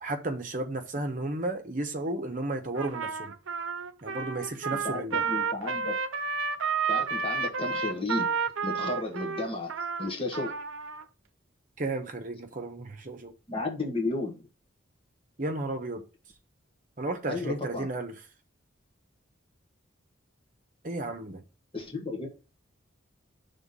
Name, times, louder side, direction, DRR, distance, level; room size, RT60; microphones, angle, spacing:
voice 1, 0.0-3.3 4.0-5.3 11.8-13.3 15.4-16.0 17.0-18.2 20.8-21.4, right 2 dB, 40° right, 1.0 m, -33 dB
Trumpet, 2.7-11.0, right 5 dB, 85° right, 0.6 m, -31 dB
voice 2, 4.8-6.0 6.9-8.3 8.6-9.7 10.0-10.5 13.5-14.5 17.3-17.9 21.7-22.3, left 2 dB, 25° left, 1.3 m, -33 dB
5.7 x 3.7 x 5.5 m
head